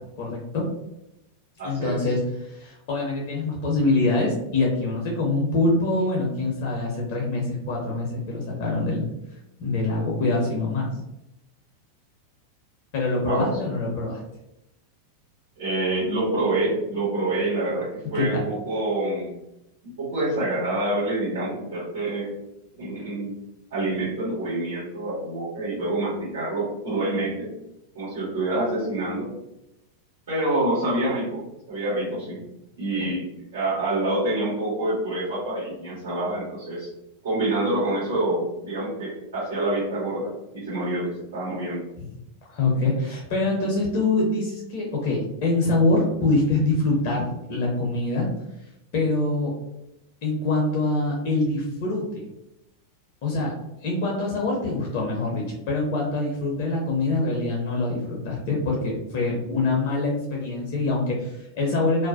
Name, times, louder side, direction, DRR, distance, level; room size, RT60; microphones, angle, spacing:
voice 1, 0.2-0.6 1.6-9.1 9.6-10.9 12.9-14.2 18.1-18.4 42.5-48.3 48.9-49.5 50.2-52.2 53.2-53.5 53.8-62.1, left 2 dB, 50° left, -1 dB, 0.6 m, -24 dB
voice 2, 1.6-1.9 13.2-13.5 15.6-19.4 20.0-22.3 22.8-23.3 23.7-27.5 27.9-29.3 30.3-32.4 32.8-33.2 33.5-36.9 37.2-41.8, right 2 dB, 60° right, -10 dB, 1.3 m, -27 dB
2.4 x 2.1 x 2.6 m, 0.87 s
figure-of-eight pair, 90°, 0 cm